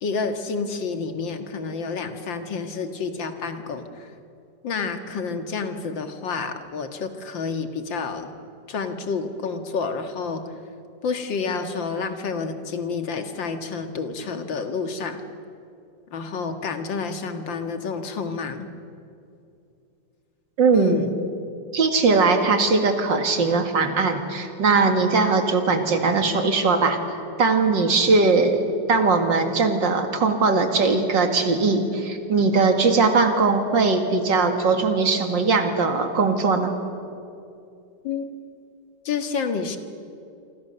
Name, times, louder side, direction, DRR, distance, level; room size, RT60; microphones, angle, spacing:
voice 1, 0.0-4.1 4.6-8.3 8.7-10.5 11.0-15.2 16.1-18.7 20.7-21.1 38.0-38.3 39.1-39.8, left 5 dB, 80° left, 7 dB, 2.4 m, -29 dB
voice 2, 20.6-21.0 21.7-27.0 27.4-28.6 28.9-36.7, right 4 dB, 75° right, 6 dB, 2.7 m, -20 dB
27.0 x 26.0 x 6.8 m, 2.6 s
omnidirectional pair, 2.0 m